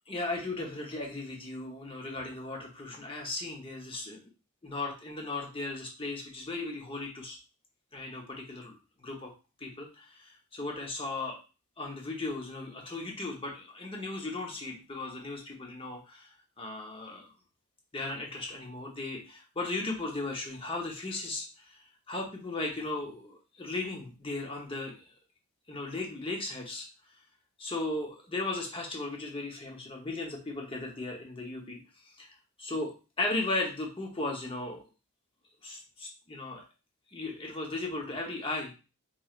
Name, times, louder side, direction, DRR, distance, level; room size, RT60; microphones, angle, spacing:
voice 1, 0.1-4.2 4.6-7.4 7.9-9.3 9.6-11.4 11.8-17.3 17.9-21.8 22.1-25.1 25.7-26.9 27.6-31.8 32.2-34.8 35.6-36.6 37.1-38.7, left 2 dB, 25° left, 1 dB, 0.9 m, -36 dB
4.3 x 3.2 x 2.4 m, 0.32 s
head